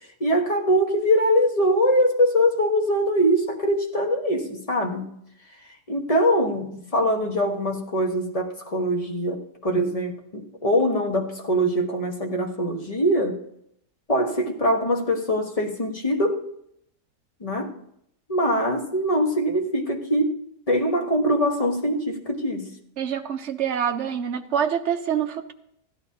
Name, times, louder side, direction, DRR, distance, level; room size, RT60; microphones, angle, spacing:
voice 1, 0.2-5.2 5.9-13.4 14.1-16.4 17.4-17.7 18.3-20.4 20.7-22.7, equal, 25° left, 2 dB, 1.0 m, -23 dB
voice 2, 23.0-25.5, right 8 dB, 55° right, 6 dB, 0.9 m, -26 dB
16.0 x 11.5 x 2.8 m, 0.75 s
omnidirectional pair, 1.7 m